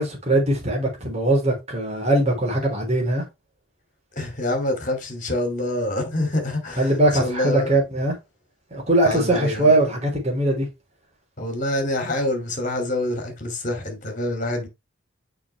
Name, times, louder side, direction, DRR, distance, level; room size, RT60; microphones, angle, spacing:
voice 1, 0.0-3.2 6.8-8.2 8.7-10.7, right 1 dB, 35° right, 3.5 m, -21 dB
voice 2, 4.2-6.9 7.2-7.7 9.0-9.8 11.4-14.7, left 1 dB, 40° left, 2.5 m, -26 dB
6.6 x 5.4 x 3.2 m
head